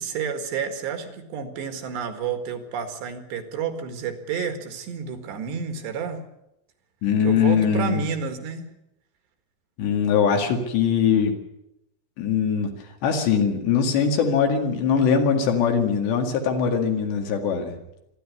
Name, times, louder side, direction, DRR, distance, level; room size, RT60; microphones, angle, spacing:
voice 1, 0.0-6.2 7.2-8.7, right 6 dB, 65° right, 7 dB, 3.7 m, -30 dB
voice 2, 7.0-8.0 9.8-11.4 12.2-12.7 13.0-17.8, left 6 dB, 65° left, 4 dB, 4.1 m, -21 dB
26.0 x 11.5 x 9.7 m, 0.85 s
omnidirectional pair, 5.6 m